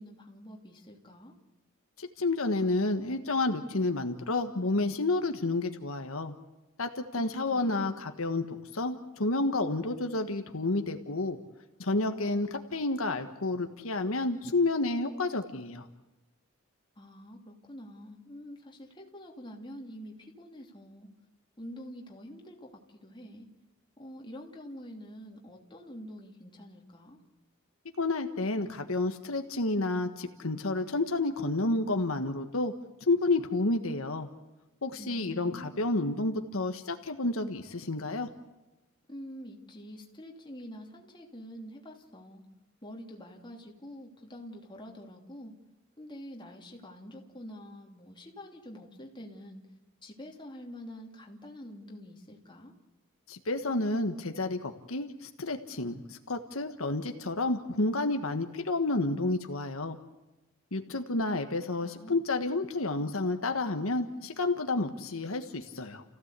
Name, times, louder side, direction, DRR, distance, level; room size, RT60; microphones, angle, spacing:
voice 1, 0.0-1.4 7.1-7.9 17.0-21.1 21.6-23.5 24.0-27.2 35.0-35.7 39.1-42.4 42.8-45.5 46.0-49.6 50.0-52.7 61.8-62.2, equal, 20° left, 0 dB, 2.9 m, -46 dB
voice 2, 2.0-6.3 6.8-11.4 11.8-15.8 28.0-32.7 33.1-34.3 34.8-38.3 53.3-60.0 60.7-66.0, left 2 dB, 80° left, 6 dB, 1.5 m, -30 dB
29.5 x 16.0 x 8.3 m, 1.1 s
head